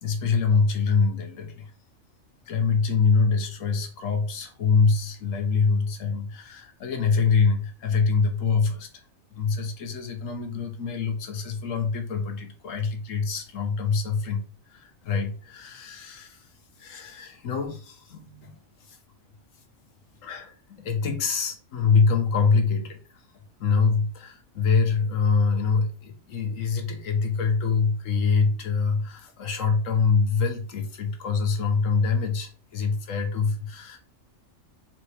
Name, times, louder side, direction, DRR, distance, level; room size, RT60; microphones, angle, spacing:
voice 1, 0.0-1.7 2.5-8.9 9.3-14.4 14.7-16.5 16.8-18.6 18.9-19.0 20.2-23.0 23.6-34.0, left 5 dB, 80° left, 5 dB, 1.3 m, -25 dB
4.0 x 3.5 x 3.3 m, 0.39 s
omnidirectional pair, 1.3 m